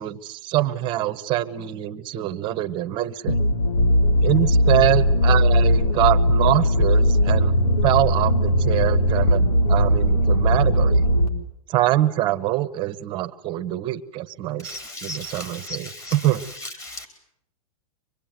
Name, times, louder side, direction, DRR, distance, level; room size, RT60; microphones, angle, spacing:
voice 1, 0.0-3.4 4.2-7.5 7.8-11.0 11.7-14.7 15.0-16.4, right 14 dB, 25° right, 11 dB, 1.2 m, -24 dB
sound 1, 3.3-11.3, equal, 85° left, 4.3 m, -19 dB
voice 2, 14.6-16.2 16.6-17.1, left 1 dB, 15° left, 6 dB, 4.8 m, -36 dB
25.5 x 21.5 x 9.3 m, 0.73 s
supercardioid pair, 160°, 18 cm